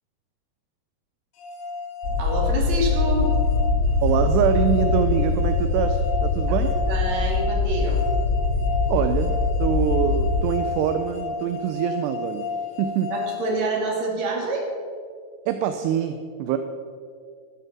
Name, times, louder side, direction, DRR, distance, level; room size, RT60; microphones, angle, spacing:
sound 1, 1.4-14.3, left 5 dB, 85° left, 4.2 m, -33 dB
sound 2, 2.0-10.5, left 3 dB, 25° left, 2.5 m, -23 dB
voice 1, 2.2-3.3 6.5-8.0 13.1-14.6, right 1 dB, 45° right, -1 dB, 3.3 m, -27 dB
voice 2, 4.0-6.7 8.9-12.5 12.8-13.1 15.5-16.6, right 9 dB, 80° right, 8 dB, 2.5 m, -24 dB
12.5 x 12.0 x 6.1 m, 2.2 s
omnidirectional pair, 5.3 m